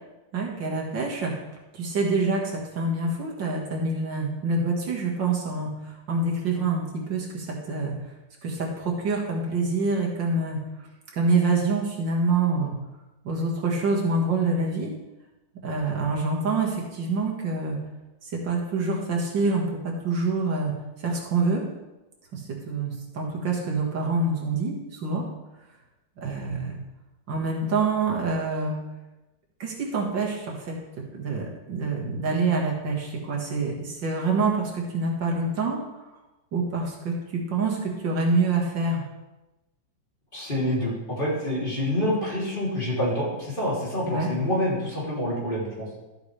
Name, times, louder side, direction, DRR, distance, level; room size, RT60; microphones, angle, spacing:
voice 1, 0.3-1.3 1.7-5.7 6.1-7.9 8.4-10.6 11.1-12.7 13.2-14.9 15.6-17.8 18.2-20.7 21.0-21.6 22.3-25.2 26.2-26.8 27.3-28.7 29.6-30.8 31.1-35.8 36.5-39.0 44.1-44.3, right 3 dB, 75° right, -2 dB, 2.4 m, -26 dB
voice 2, 40.3-45.9, left 1 dB, 25° left, -6 dB, 3.3 m, -27 dB
13.0 x 8.3 x 3.3 m, 1.0 s
omnidirectional pair, 2.0 m